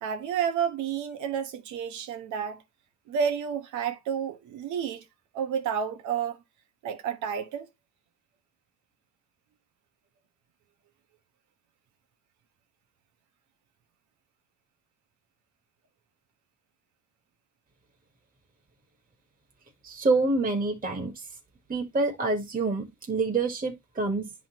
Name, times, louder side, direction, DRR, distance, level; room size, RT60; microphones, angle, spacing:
voice 1, 0.0-2.6 3.1-5.1 5.3-6.4 6.8-7.7, right 7 dB, 80° right, 1.4 m, -30 dB
voice 2, 19.8-21.2 21.7-24.3, right 3 dB, 30° right, 1.7 m, -27 dB
10.5 x 3.8 x 3.1 m
supercardioid pair, 80°, 29 cm